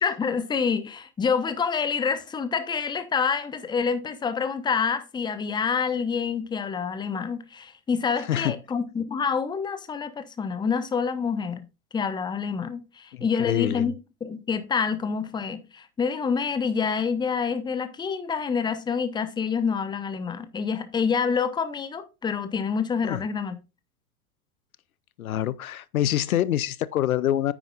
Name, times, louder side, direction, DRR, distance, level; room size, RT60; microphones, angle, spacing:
voice 1, 0.0-11.7 11.9-13.9 14.2-23.6, left 6 dB, 10° left, 0.8 m, -27 dB
voice 2, 13.1-13.9 23.0-23.2 25.2-27.5, left 12 dB, 70° left, 0.6 m, -25 dB
9.7 x 8.7 x 2.4 m
figure-of-eight pair, 90°, 44 cm